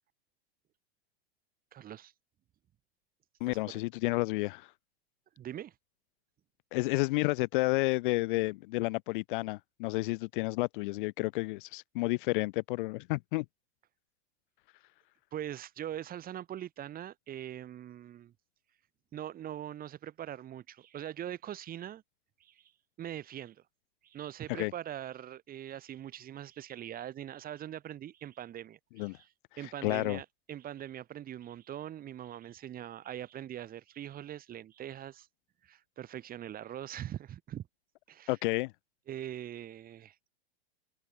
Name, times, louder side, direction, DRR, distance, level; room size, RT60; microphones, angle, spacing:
voice 1, 1.7-2.1 3.5-3.6 5.4-5.7 15.3-18.3 19.1-22.0 22.4-22.7 23.0-23.6 24.0-29.3 29.6-35.3 35.6-37.7 38.1-38.4 39.1-40.3, right 11 dB, 25° right, 4.1 m, -42 dB
voice 2, 3.4-4.7 6.7-13.5 24.5-24.7 29.0-29.2 29.8-30.2 38.3-38.7, left 23 dB, 55° left, 0.5 m, -31 dB
supercardioid pair, 135°, 32 cm